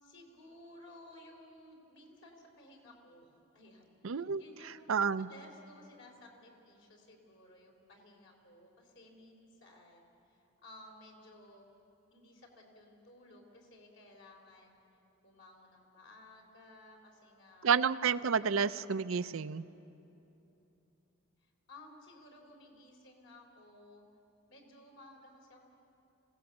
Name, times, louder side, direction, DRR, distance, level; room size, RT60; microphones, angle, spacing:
voice 1, 0.0-4.8 5.2-11.6 12.1-14.8 15.2-18.0 18.4-18.5 18.8-19.0 21.4-24.1 24.5-25.6, left 1 dB, 60° left, 0 dB, 3.8 m, -57 dB
voice 2, 4.0-5.3 17.6-19.7, right 6 dB, 70° right, 15 dB, 0.5 m, -30 dB
25.5 x 17.0 x 7.3 m, 3.0 s
head